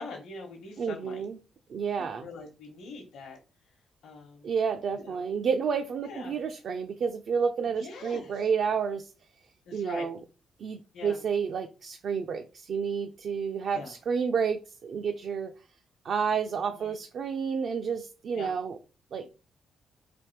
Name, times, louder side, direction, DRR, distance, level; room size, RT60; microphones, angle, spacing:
voice 1, 0.0-1.2 2.0-3.4 3.7-3.8 4.0-4.5 4.9-5.2 6.0-6.4 7.7-8.4 9.6-10.1 10.9-11.2 13.7-13.9 16.6-17.0 18.3-18.5, left 4 dB, 80° left, 0 dB, 1.0 m, -43 dB
voice 2, 0.8-1.4 1.7-2.3 4.4-9.1 9.7-10.2 10.6-15.5 16.0-18.8 19.1-19.3, right 6 dB, 60° right, 6 dB, 0.4 m, -30 dB
3.4 x 2.8 x 4.4 m, 0.33 s
cardioid pair, 110°, 0 cm